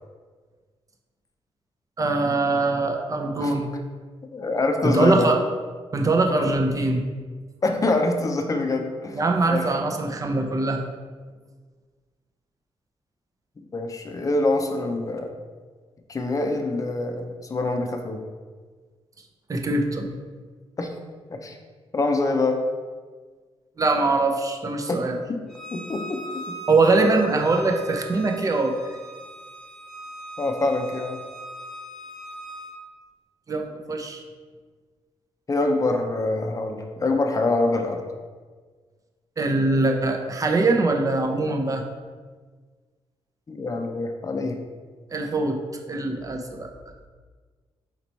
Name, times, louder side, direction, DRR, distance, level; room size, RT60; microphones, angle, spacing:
voice 1, 2.0-3.7 4.8-5.4 5.9-7.0 9.1-10.8 19.5-20.1 23.8-25.2 26.7-28.8 33.5-34.2 39.4-41.8 45.1-45.6 45.9-46.7, right 3 dB, 35° right, 3 dB, 0.6 m, -22 dB
voice 2, 4.3-5.3 6.5-6.6 7.6-9.2 9.5-9.7 13.7-15.3 16.1-18.2 20.8-20.9 21.3-21.6 21.9-22.6 24.9-25.4 25.7-26.5 30.4-31.2 35.5-38.0 43.5-44.6, left 2 dB, 30° left, 5 dB, 0.6 m, -25 dB
Bowed string instrument, 25.5-32.7, right 1 dB, 5° left, 0.8 m, -40 dB
4.4 x 3.0 x 4.0 m, 1.5 s
cardioid pair, 90°, 11 cm